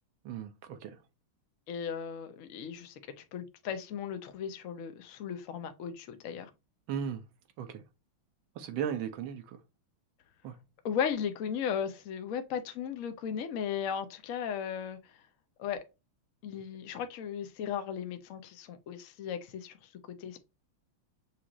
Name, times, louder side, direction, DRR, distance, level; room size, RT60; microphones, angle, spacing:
voice 1, 0.2-1.0 6.9-7.2 7.6-7.8 8.5-9.6 10.4-10.6, right 8 dB, 75° right, 1.5 m, -36 dB
voice 2, 1.7-3.0 3.3-6.5 10.8-15.0 15.6-15.8 16.4-19.8 20.1-20.4, left 8 dB, 70° left, 0.7 m, -36 dB
6.3 x 2.5 x 2.9 m
omnidirectional pair, 2.3 m